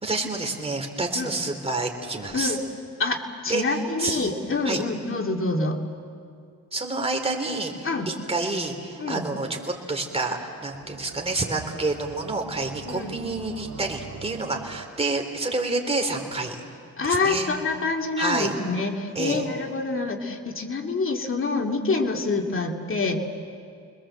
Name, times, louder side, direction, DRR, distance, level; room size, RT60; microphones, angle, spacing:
voice 1, 0.0-2.6 3.5-3.6 4.0-4.3 4.7-4.8 6.7-16.6 17.0-17.5 18.2-18.5 19.2-19.4, right 2 dB, 20° right, 2 dB, 3.6 m, -28 dB
voice 2, 3.0-5.8 7.8-8.1 9.0-9.2 12.9-13.2 17.0-23.2, left 3 dB, 45° left, 2 dB, 2.5 m, -26 dB
sound 1, 10.7-14.9, right 7 dB, 80° right, 1.5 m, -43 dB
30.0 x 21.0 x 7.7 m, 2.3 s
cardioid pair, 90°, 30 cm